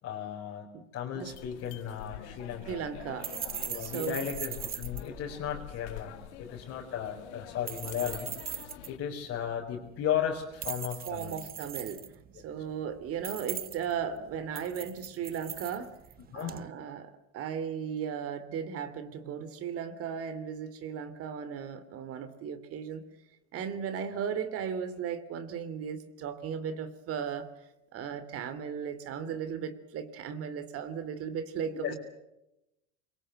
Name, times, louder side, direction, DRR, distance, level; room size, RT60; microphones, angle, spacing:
voice 1, 0.0-2.8 3.7-8.3 8.9-11.4 12.3-12.4 16.3-16.6 31.8-31.9, left 9 dB, 35° left, -2 dB, 4.8 m, -35 dB
sound 1, 1.2-9.0, left 14 dB, 75° left, 1.9 m, -46 dB
sound 2, 1.6-16.7, right 9 dB, 25° right, 1.3 m, -42 dB
voice 2, 2.6-3.3 3.8-4.2 11.0-12.0 12.4-15.9 16.3-23.0 23.5-27.5 27.9-31.9, right 7 dB, 40° right, 14 dB, 2.9 m, -36 dB
26.0 x 23.0 x 7.7 m, 0.89 s
supercardioid pair, 120°, 34 cm